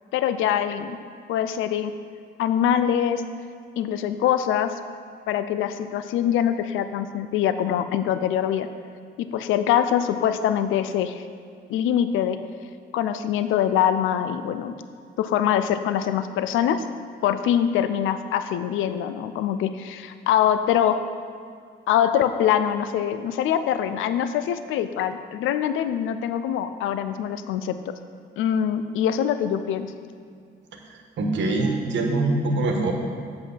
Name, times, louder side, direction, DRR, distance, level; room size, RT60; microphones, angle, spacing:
voice 1, 0.1-1.0 1.3-1.9 2.4-3.2 3.8-4.7 5.3-8.7 9.2-11.2 11.7-12.4 12.9-14.7 15.2-16.8 17.2-21.0 21.9-27.8 28.4-29.9, left 9 dB, 85° left, 10 dB, 0.4 m, -23 dB
voice 2, 31.2-32.9, right 2 dB, 70° right, 2 dB, 1.3 m, -23 dB
7.7 x 5.7 x 6.2 m, 2.1 s
cardioid pair, 90°, 20 cm